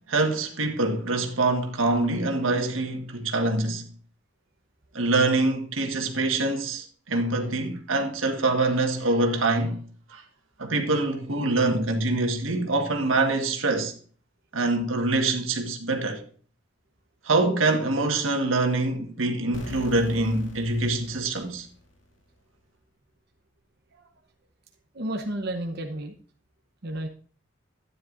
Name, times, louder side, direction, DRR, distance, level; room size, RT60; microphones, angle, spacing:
voice 1, 0.1-3.9 4.9-9.8 10.1-10.2 10.6-13.9 14.5-16.2 17.2-21.7, right 2 dB, 90° right, 1.6 m, -25 dB
sound 1, 19.5-22.2, left 1 dB, 70° left, 2.5 m, -43 dB
voice 2, 24.9-26.1 26.8-27.1, right 1 dB, 55° right, 0.9 m, -32 dB
12.5 x 9.9 x 2.6 m
head